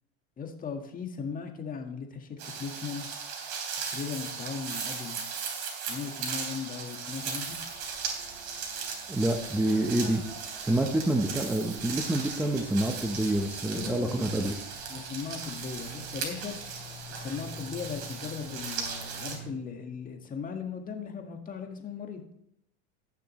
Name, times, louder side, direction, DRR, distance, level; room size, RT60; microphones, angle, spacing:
voice 1, 0.4-3.1 3.9-5.2 5.9-7.6 13.7-14.5 14.9-16.6 17.1-22.2, left 6 dB, 25° left, 4 dB, 1.7 m, -38 dB
sound 1, 2.4-19.4, right 6 dB, 50° right, 3.5 m, -37 dB
sound 2, 7.2-19.5, equal, 30° right, 3.1 m, -49 dB
voice 2, 9.1-10.2 10.6-14.5, right 1 dB, 5° right, 3 dB, 0.9 m, -27 dB
18.5 x 6.7 x 3.1 m, 0.76 s
supercardioid pair, 120°, 34 cm